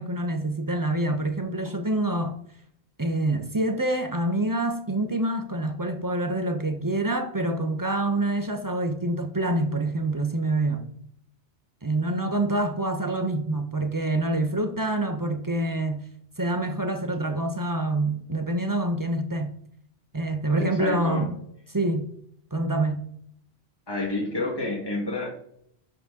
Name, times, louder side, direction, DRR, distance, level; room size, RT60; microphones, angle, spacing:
voice 1, 0.0-2.3 3.0-10.9 11.8-16.1 16.4-19.6 20.1-21.4 21.7-22.1 22.5-23.0, right 2 dB, 20° right, 0.6 m, -26 dB
voice 2, 20.6-21.3 23.9-25.3, left 2 dB, 20° left, 1.6 m, -29 dB
11.0 x 3.9 x 3.7 m
omnidirectional pair, 1.2 m